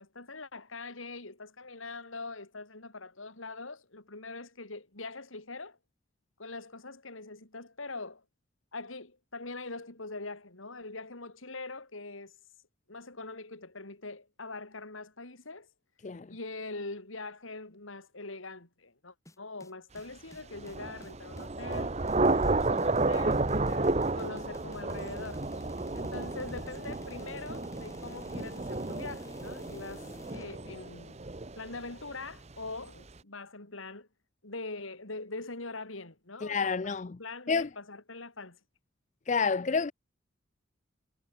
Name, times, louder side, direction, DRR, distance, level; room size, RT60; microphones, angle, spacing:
voice 1, 0.0-5.8 6.4-8.2 8.7-12.3 12.9-15.7 16.3-22.0 22.3-25.5 25.9-31.3 31.6-34.1 34.4-38.6, left 3 dB, 90° left, 3.8 m, -43 dB
voice 2, 16.0-16.4 36.4-37.2 37.5-37.7 39.3-39.9, left 5 dB, 35° left, 0.5 m, -29 dB
sound 1, 19.3-30.5, left 1 dB, 15° left, 7.5 m, -52 dB
Thunder / Rain, 20.5-32.1, right 2 dB, 35° right, 1.0 m, -32 dB
head